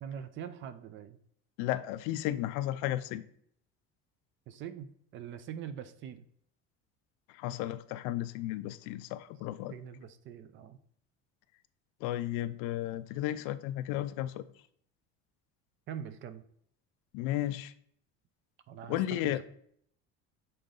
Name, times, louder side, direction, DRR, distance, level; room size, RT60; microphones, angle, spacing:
voice 1, 0.0-1.2 4.5-6.2 9.7-10.8 15.9-16.4 18.7-19.4, right 8 dB, 40° right, 0.5 m, -43 dB
voice 2, 1.6-3.2 7.3-9.7 12.0-14.5 17.1-17.7 18.9-19.4, left 14 dB, 85° left, 0.5 m, -33 dB
6.8 x 3.9 x 3.7 m
cardioid pair, 165°, 29 cm